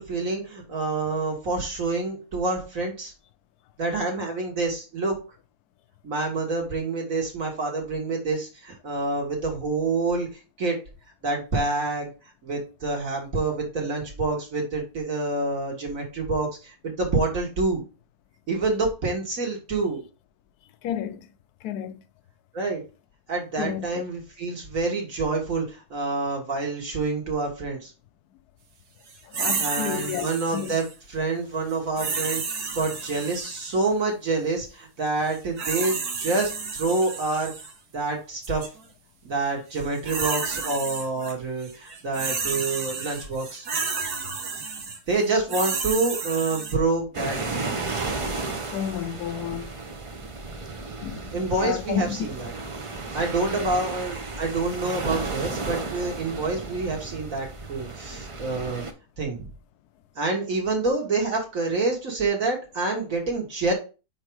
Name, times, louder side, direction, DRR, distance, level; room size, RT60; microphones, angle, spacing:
voice 1, 0.0-3.1 3.8-5.1 6.0-10.3 10.6-10.8 11.2-12.1 12.4-17.8 18.5-20.0 22.5-22.8 23.3-27.9 29.6-37.5 37.9-38.6 39.2-43.7 45.1-47.6 51.3-52.5 53.1-58.8 59.2-59.5 60.2-63.7, right 3 dB, 60° right, 2.1 m, -27 dB
voice 2, 20.8-21.3 21.6-22.0 23.6-24.0 29.3-30.3 30.5-30.8 48.7-49.7 51.0-52.3 53.5-53.7, left 9 dB, 80° left, 1.1 m, -31 dB
sound 1, 29.3-30.9 32.0-33.8 35.3-37.7 38.4-38.7 39.7-41.3 41.6-46.8, right 5 dB, 85° right, 1.6 m, -31 dB
sound 2, 47.1-58.9, right 3 dB, 40° right, 0.4 m, -34 dB
4.9 x 4.5 x 4.6 m
omnidirectional pair, 1.6 m